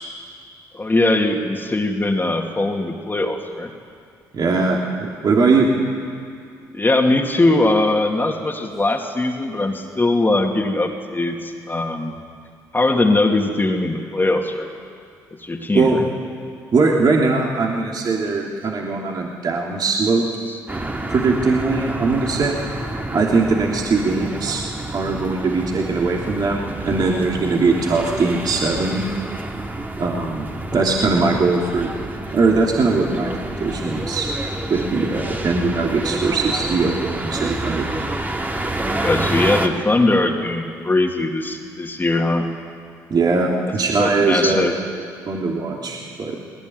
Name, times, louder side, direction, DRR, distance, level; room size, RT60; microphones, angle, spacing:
voice 1, 0.7-3.7 6.7-12.1 12.7-14.7 15.4-16.0 20.5-20.6 39.0-42.5 44.0-44.8, left 2 dB, 25° left, 2 dB, 2.5 m, -20 dB
voice 2, 4.3-5.7 15.7-16.0 16.7-20.2 21.1-22.6 23.1-24.6 24.9-29.0 30.0-31.9 32.3-33.3 33.6-34.3 34.7-37.9 43.1-44.7 45.3-46.4, right 3 dB, 50° right, -1 dB, 3.1 m, -20 dB
sound 1, 20.7-39.7, right 2 dB, 20° right, 2.5 m, -28 dB
19.5 x 19.5 x 9.5 m, 2.2 s
hypercardioid pair, 55°, 9 cm